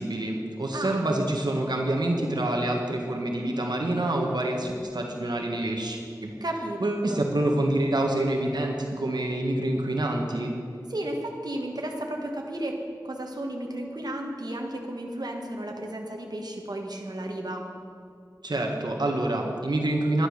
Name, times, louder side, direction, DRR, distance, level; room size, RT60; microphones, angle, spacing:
voice 1, 0.0-6.3 6.8-10.5 18.4-20.3, right 1 dB, 85° right, 1 dB, 1.5 m, -27 dB
voice 2, 0.7-1.1 6.4-6.8 7.1-7.2 10.9-17.6, right 1 dB, 70° right, 1 dB, 1.6 m, -33 dB
11.5 x 11.5 x 6.6 m, 2.4 s
wide cardioid pair, 50°, 7 cm